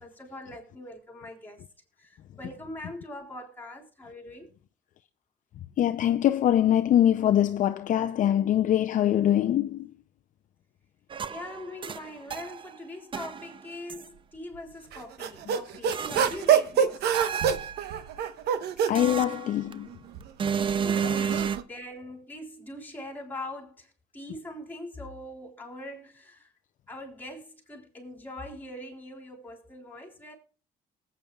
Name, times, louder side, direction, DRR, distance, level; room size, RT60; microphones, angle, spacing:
voice 1, 0.0-1.6 2.0-4.5 11.3-17.0 20.8-23.9 24.1-26.5 26.9-30.3, left 1 dB, 10° left, 3.8 m, -42 dB
voice 2, 5.8-9.9 18.9-19.9 21.0-21.1, left 11 dB, 50° left, 0.5 m, -23 dB
sound 1, 11.1-12.8 13.1-14.1 15.9-16.6 17.1-18.0 18.9-19.8 20.4-21.6, right 7 dB, 30° right, 0.5 m, -31 dB
sound 2, 14.9-19.0 19.9-21.6, right 8 dB, 75° right, 1.0 m, -26 dB
19.5 x 8.7 x 2.3 m
cardioid pair, 110°, 17 cm